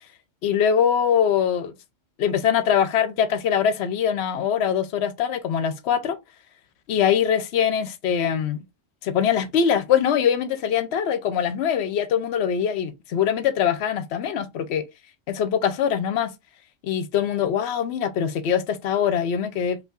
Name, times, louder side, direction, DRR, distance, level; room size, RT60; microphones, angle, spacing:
voice 1, 0.4-1.7 2.2-6.2 6.9-8.6 9.0-14.8 15.3-16.3 16.8-19.8, left 8 dB, 65° left, 0.8 m, -23 dB
5.2 x 2.9 x 2.4 m
omnidirectional pair, 1.3 m